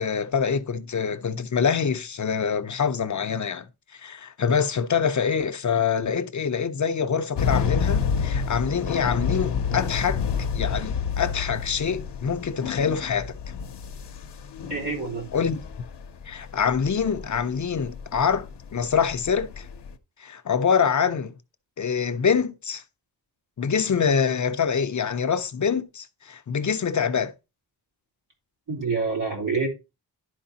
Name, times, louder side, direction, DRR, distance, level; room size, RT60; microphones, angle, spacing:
voice 1, 0.0-3.7 3.9-10.2 10.5-13.4 15.3-15.6 16.3-19.7 20.2-21.3 21.8-22.8 23.6-27.3, left 6 dB, 45° left, 0.6 m, -25 dB
sound 1, 7.4-19.9, left 6 dB, 85° left, 0.7 m, -29 dB
voice 2, 14.7-15.3 28.7-29.7, right 4 dB, 85° right, 3.1 m, -27 dB
11.5 x 4.8 x 2.8 m
wide cardioid pair, 125°, 40 cm